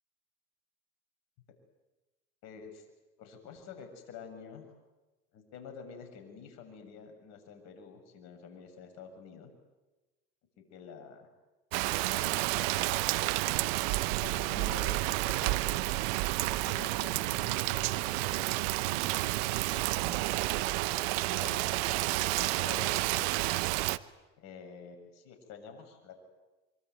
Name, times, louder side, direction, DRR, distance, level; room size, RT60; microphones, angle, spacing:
voice 1, 2.4-2.9 3.2-4.7 5.3-9.5 10.7-11.3 11.9-12.8 13.1-13.5 14.2-15.9 16.5-20.6 21.3-22.1 22.4-23.3 24.4-26.2, left 6 dB, 60° left, 6 dB, 7.1 m, -48 dB
Rain, 11.7-24.0, right 20 dB, 70° right, 1.0 m, -30 dB
25.5 x 25.0 x 9.4 m, 1.1 s
hypercardioid pair, 80°, 31 cm